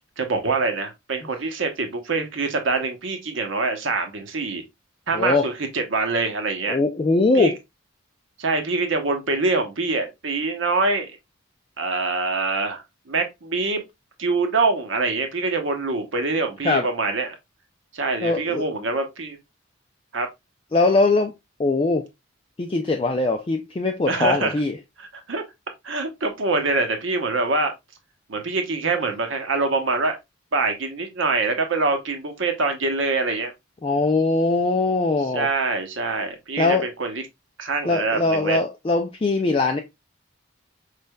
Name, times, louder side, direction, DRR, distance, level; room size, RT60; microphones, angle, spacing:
voice 1, 0.2-4.6 5.1-6.8 7.4-7.5 8.4-11.1 11.8-13.8 14.2-17.4 17.9-19.4 20.1-20.3 24.1-24.5 25.0-25.4 25.8-27.7 28.3-30.2 30.5-33.5 35.3-37.2 37.6-38.6, right 3 dB, 60° right, 0.9 m, -24 dB
voice 2, 5.1-5.5 6.7-7.6 16.6-16.9 18.2-18.6 20.7-21.3 21.6-22.1 22.6-24.8 33.8-35.5 36.6-36.9 37.8-39.8, left 3 dB, 25° left, 0.3 m, -21 dB
5.3 x 3.2 x 2.2 m
head